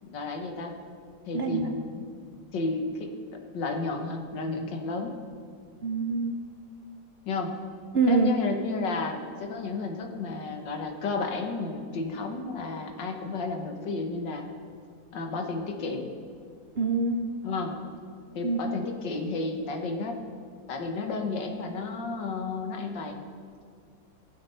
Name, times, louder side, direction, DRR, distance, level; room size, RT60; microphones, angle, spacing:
voice 1, 0.0-0.7 1.3-2.0 2.5-3.1 3.5-5.1 7.3-7.5 8.1-14.5 15.1-16.1 17.4-17.8 18.4-20.2 20.7-23.2, left 3 dB, 90° left, 4 dB, 2.0 m, -32 dB
voice 2, 1.3-1.7 5.8-6.3 7.9-8.3 16.8-17.3 18.4-18.6, right 3 dB, 50° right, 3 dB, 0.7 m, -25 dB
19.0 x 7.6 x 5.7 m, 2.2 s
omnidirectional pair, 1.9 m